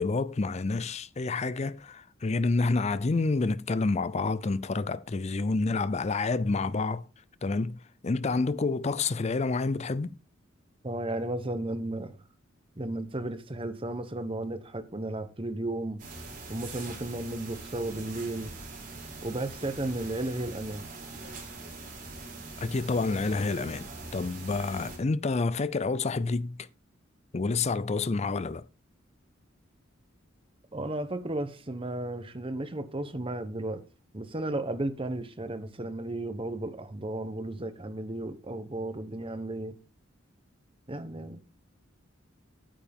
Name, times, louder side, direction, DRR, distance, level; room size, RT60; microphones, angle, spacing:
voice 1, 0.0-7.0 7.4-10.1 22.6-26.7 27.3-28.6, left 3 dB, 35° left, 0.5 m, -28 dB
voice 2, 10.8-12.2 12.8-16.0 16.5-18.5 19.2-20.8 24.8-24.9 30.7-33.8 34.1-39.8 40.9-41.4, right 1 dB, 25° right, 0.9 m, -34 dB
sound 1, 16.0-25.0, right 3 dB, 45° right, 4.2 m, -43 dB
9.3 x 8.9 x 3.6 m
head